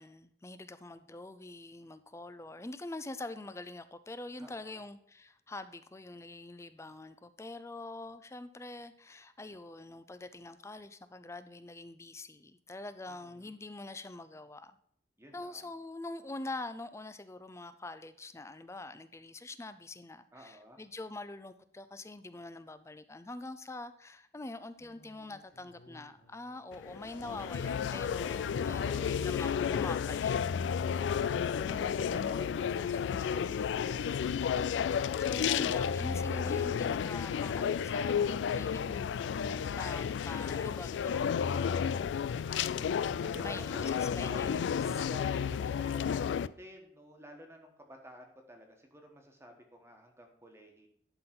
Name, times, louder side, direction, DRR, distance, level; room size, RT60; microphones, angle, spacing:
voice 1, 0.0-14.8 15.3-30.4 32.7-33.9 35.2-39.1 39.4-41.4 43.4-44.9, left 2 dB, 15° left, 0.4 m, -45 dB
voice 2, 4.4-4.8 13.1-13.5 15.2-15.7 20.3-20.8 28.6-29.7 31.0-32.9 42.1-42.8 43.2-44.5 44.9-50.9, equal, 15° right, 1.3 m, -51 dB
sound 1, 24.8-28.1 28.4-28.5 29.1-31.9 32.1-32.6, left 1 dB, 65° left, 1.9 m, -59 dB
sound 2, 26.7-46.5, left 7 dB, 85° left, 0.3 m, -32 dB
11.5 x 3.9 x 5.9 m
head